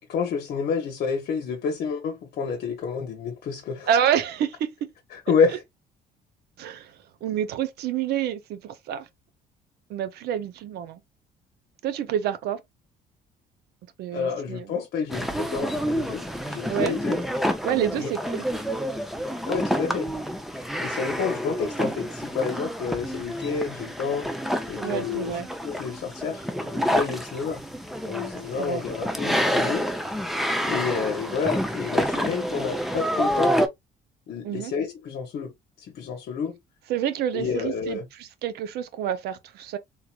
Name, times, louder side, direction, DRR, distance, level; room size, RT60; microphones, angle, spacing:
voice 1, 0.1-3.9 5.1-5.6 14.1-17.2 17.9-18.1 19.5-20.1 20.8-24.3 24.7-27.6 28.1-29.9 30.6-33.6 34.3-35.5 35.8-36.5 37.3-38.0, left 6 dB, 70° left, 0.9 m, -29 dB
voice 2, 3.9-4.7 6.6-6.9 7.2-9.1 9.9-11.0 11.8-12.6 14.0-14.7 16.7-16.9 17.6-18.4 24.8-25.5 28.5-28.8 34.4-34.7 36.9-39.8, right 9 dB, 75° right, 0.6 m, -28 dB
sound 1, 15.1-33.7, equal, ahead, 0.6 m, -28 dB
3.7 x 2.9 x 2.3 m
cardioid pair, 110°, 17 cm